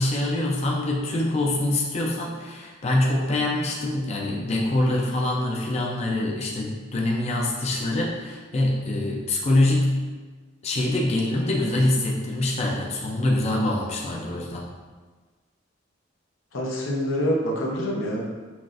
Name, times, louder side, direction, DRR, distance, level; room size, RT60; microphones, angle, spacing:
voice 1, 0.0-9.9 10.6-14.7, left 1 dB, 35° left, -2 dB, 0.4 m, -24 dB
voice 2, 16.5-18.2, equal, 85° left, -3 dB, 0.8 m, -26 dB
5.9 x 2.5 x 2.5 m, 1.4 s
head